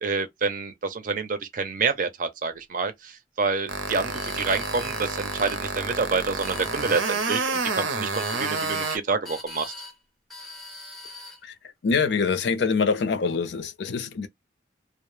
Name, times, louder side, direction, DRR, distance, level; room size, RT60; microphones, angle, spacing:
voice 1, 0.0-9.7, right 4 dB, 45° right, 0.5 m, -28 dB
sound 1, 3.7-9.0, right 4 dB, 90° right, 0.6 m, -29 dB
sound 2, 4.1-5.6 6.2-7.5 8.1-9.0 9.2-10.0 10.3-11.4, left 2 dB, ahead, 0.6 m, -41 dB
voice 2, 11.8-14.3, left 5 dB, 65° left, 0.4 m, -24 dB
2.0 x 2.0 x 3.1 m
head